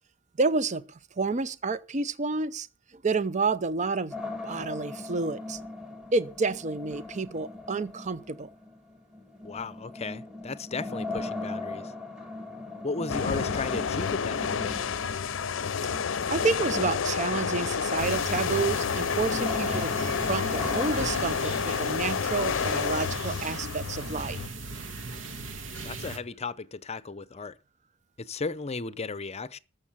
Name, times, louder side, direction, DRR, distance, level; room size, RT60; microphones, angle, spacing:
voice 1, 0.4-2.7 3.0-4.1 4.4-5.6 6.1-8.5 16.3-24.4, right 4 dB, 40° right, 0.6 m, -29 dB
sound 1, 4.1-21.1, left 2 dB, 5° right, 4.1 m, -40 dB
voice 2, 9.4-11.9 12.8-14.8 25.8-27.6 28.2-29.6, left 3 dB, 35° left, 0.7 m, -35 dB
sound 2, 13.1-24.5, left 6 dB, 75° left, 0.6 m, -29 dB
sound 3, 18.0-26.2, right 3 dB, 75° right, 1.8 m, -38 dB
14.0 x 6.6 x 8.7 m
head